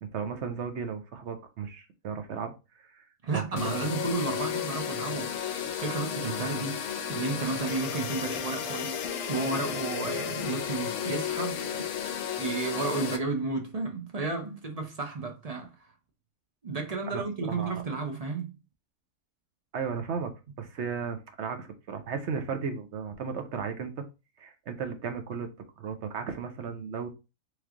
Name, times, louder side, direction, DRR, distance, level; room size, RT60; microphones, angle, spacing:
voice 1, 0.0-3.0 3.3-3.8 4.2-4.4 17.1-17.7 19.7-24.0 24.4-25.5 25.8-27.1, right 6 dB, 60° right, 0.9 m, -35 dB
voice 2, 3.2-5.3 5.8-9.0 9.3-11.9 12.4-15.9 16.6-18.6, right 3 dB, 45° right, 0.5 m, -32 dB
sound 1, 3.6-13.2, left 8 dB, 65° left, 0.8 m, -33 dB
3.2 x 3.1 x 3.6 m
omnidirectional pair, 1.5 m